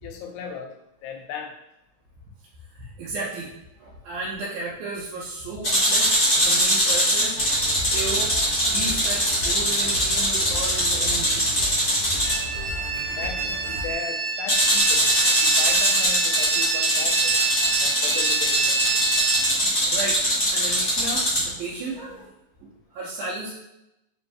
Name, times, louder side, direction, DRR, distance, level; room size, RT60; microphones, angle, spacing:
voice 1, 0.0-1.5 13.2-17.4 17.8-18.9 19.8-19.9, left 6 dB, 80° left, 3 dB, 1.8 m, -37 dB
voice 2, 2.7-3.5 3.8-7.4 7.9-8.3 8.7-11.6 16.4-16.5 19.5-20.2 20.5-22.3 22.6-23.5, right 3 dB, 85° right, -6 dB, 2.1 m, -34 dB
sound 1, 5.6-12.4 14.5-21.5, equal, 40° left, 0.8 m, -22 dB
sound 2, 7.3-13.9, equal, 65° right, 1.9 m, -36 dB
sound 3, 12.2-19.5, right 5 dB, 40° right, 1.7 m, -27 dB
5.0 x 2.6 x 3.2 m, 0.90 s
omnidirectional pair, 3.4 m